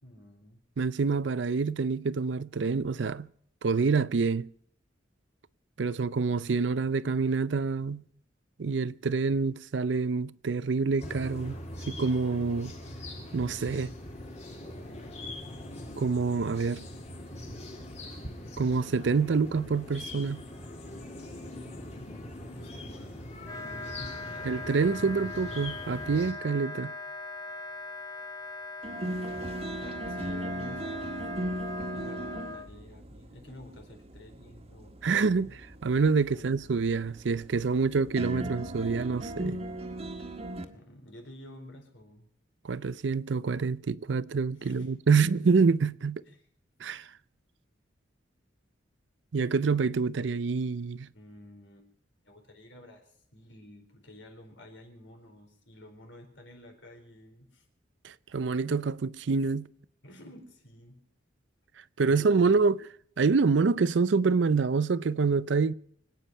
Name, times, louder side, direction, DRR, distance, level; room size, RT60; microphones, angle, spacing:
voice 1, 0.0-0.6 21.4-24.6 29.8-31.2 31.9-35.5 36.3-36.7 40.7-42.3 44.6-45.0 46.2-46.5 51.1-51.9 52.2-57.7 60.0-61.0 62.0-62.7, left 1 dB, 75° left, 4.4 m, -51 dB
voice 2, 0.8-3.3 3.6-4.5 5.8-8.0 8.6-11.6 11.9-12.7 13.3-13.9 16.0-16.8 18.6-20.4 24.5-26.9 35.0-35.5 35.8-39.6 42.6-46.2 46.8-47.1 49.3-51.1 58.0-59.7 62.0-62.8 63.2-65.7, right 4 dB, 70° right, 0.5 m, -26 dB
sound 1, 11.0-26.3, left 1 dB, 35° left, 2.8 m, -42 dB
Wind instrument woodwind instrument, 23.4-32.7, left 2 dB, 20° left, 0.9 m, -40 dB
sound 2, 28.8-40.6, right 1 dB, 35° right, 1.5 m, -38 dB
25.5 x 9.3 x 5.5 m
head